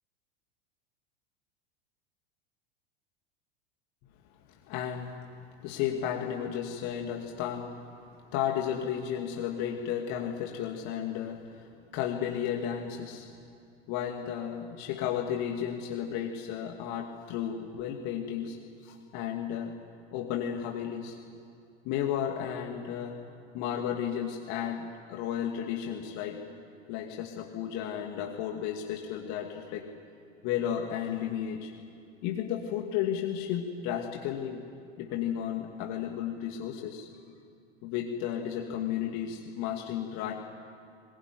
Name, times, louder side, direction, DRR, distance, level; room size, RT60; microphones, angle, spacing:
voice 1, 4.7-5.2 5.6-7.7 8.3-13.3 13.9-19.7 20.1-21.2 21.8-23.2 23.5-26.4 26.9-29.8 30.4-31.7 32.2-34.6 35.0-37.1 37.8-40.3, left 9 dB, 50° left, 2 dB, 2.4 m, -33 dB
21.5 x 21.0 x 9.8 m, 2.5 s
hypercardioid pair, 90°, 35 cm